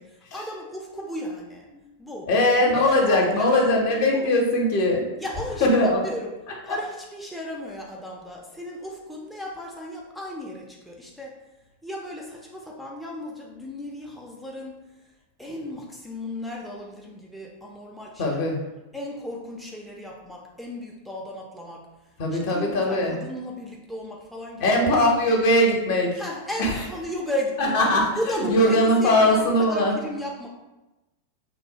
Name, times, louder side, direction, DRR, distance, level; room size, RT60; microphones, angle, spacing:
voice 1, 0.0-1.7 2.0-2.3 2.6-3.5 4.1-4.3 5.2-6.3 6.6-11.3 11.8-15.1 15.4-18.4 18.9-24.8 26.2-30.5, left 1 dB, ahead, -3 dB, 0.4 m, -35 dB
voice 2, 2.3-5.1 5.6-6.0 18.2-18.6 22.2-23.1 24.6-26.2 26.6-26.7 27.6-28.1 28.5-30.0, left 1 dB, 50° left, 0 dB, 0.6 m, -20 dB
3.1 x 2.0 x 2.7 m, 1.0 s
figure-of-eight pair, 90°, 0 cm